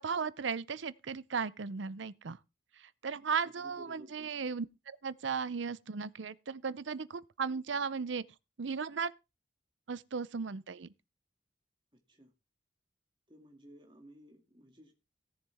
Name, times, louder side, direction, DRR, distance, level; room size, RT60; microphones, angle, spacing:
voice 1, 0.0-2.4 3.0-8.2 8.6-9.1 9.9-10.9, right 5 dB, 75° right, 0.6 m, -36 dB
voice 2, 3.4-4.3 12.1-12.3 13.3-14.9, equal, 25° right, 2.3 m, -56 dB
17.5 x 7.2 x 3.5 m
head